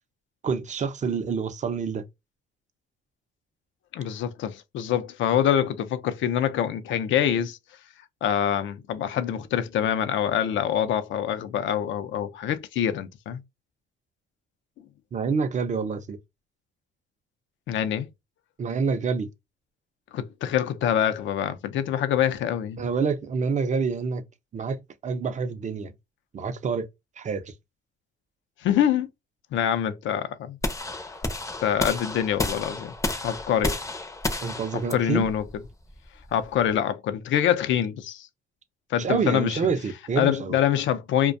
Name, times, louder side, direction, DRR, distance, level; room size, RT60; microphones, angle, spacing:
voice 1, 0.4-2.0 15.1-16.2 18.6-19.3 22.8-24.2 24.5-25.9 26.3-26.9 27.2-27.5 34.4-35.3 39.0-40.6, right 5 dB, 40° right, 0.5 m, -27 dB
voice 2, 3.9-7.6 8.2-13.4 17.7-18.1 20.1-22.8 28.6-29.1 29.5-30.6 31.6-32.9 33.2-33.8 34.9-35.4 36.3-38.3 38.9-39.6 40.2-41.3, left 10 dB, 75° left, 0.5 m, -25 dB
sound 1, 30.6-36.7, left 2 dB, 15° left, 0.5 m, -31 dB
2.4 x 2.1 x 2.5 m
cardioid pair, 90°, 20 cm